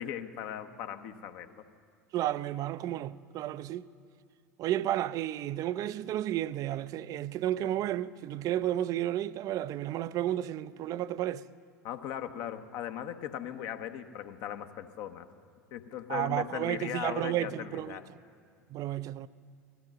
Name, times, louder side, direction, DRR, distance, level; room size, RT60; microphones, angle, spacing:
voice 1, 0.0-1.6 11.8-15.3 15.7-18.0, left 10 dB, 55° left, 0.9 m, -38 dB
voice 2, 2.1-3.9 4.6-11.4 16.1-18.0 18.7-19.3, right 13 dB, 40° right, 0.4 m, -32 dB
17.0 x 13.5 x 6.1 m
figure-of-eight pair, 75°, 9 cm